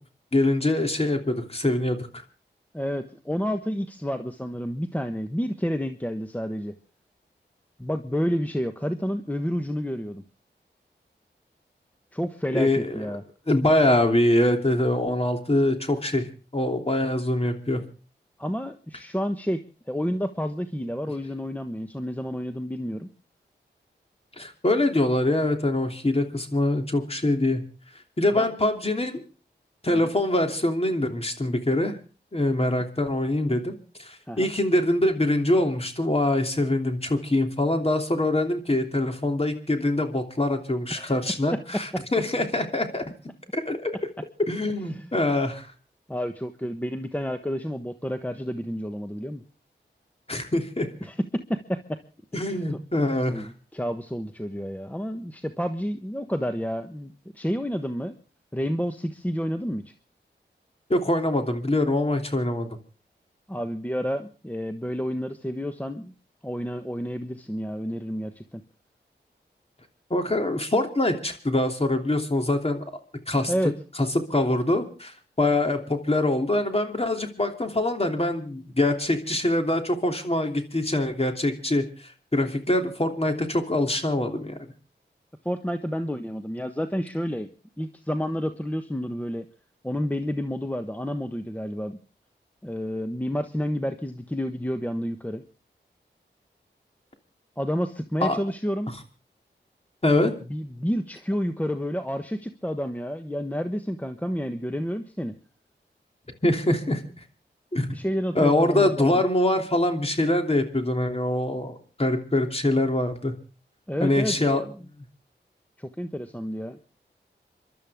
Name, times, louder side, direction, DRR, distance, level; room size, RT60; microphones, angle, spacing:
voice 1, 0.3-2.1 12.5-13.1 13.5-16.3 16.5-17.8 24.4-27.6 28.2-29.2 29.8-31.9 32.3-43.0 43.5-43.9 44.5-45.7 50.3-50.9 52.3-53.5 60.9-62.7 70.1-72.8 73.3-73.5 74.1-84.6 98.2-98.4 100.0-100.3 106.4-107.0 107.7-107.9 108.3-113.3 114.0-114.6, left 1 dB, 30° left, 5 dB, 3.1 m, -24 dB
voice 2, 2.7-6.7 7.8-10.2 12.1-13.2 18.4-23.1 28.3-28.5 34.3-34.5 40.9-41.2 41.9-42.0 44.9-45.0 46.1-49.4 51.0-52.0 52.3-52.8 53.3-58.2 58.5-59.9 63.5-66.1 66.4-68.6 73.5-73.7 85.4-87.5 87.8-89.5 89.8-92.0 92.6-95.4 97.6-98.9 100.5-105.4 107.9-109.2 113.9-114.6 115.8-116.8, equal, 10° left, 8 dB, 1.2 m, -30 dB
27.0 x 12.5 x 3.6 m, 0.35 s
cardioid pair, 45°, 19 cm